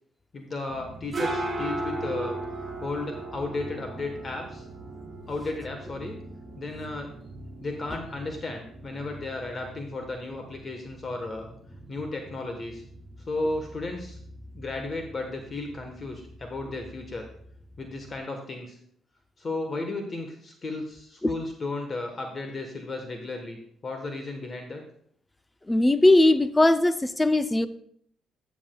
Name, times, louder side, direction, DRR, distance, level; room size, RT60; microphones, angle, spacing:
voice 1, 0.3-2.4 2.8-4.6 5.3-6.2 6.6-7.1 7.6-11.5 11.9-12.8 13.3-14.2 14.5-17.3 17.8-18.8 19.4-23.6 23.8-24.8, left 2 dB, 40° left, 1.2 m, -34 dB
sound 1, 0.7-18.2, right 2 dB, 25° right, 2.9 m, -39 dB
voice 2, 25.7-27.7, left 2 dB, 15° left, 0.5 m, -19 dB
13.5 x 7.3 x 2.3 m
cardioid pair, 90°, 0 cm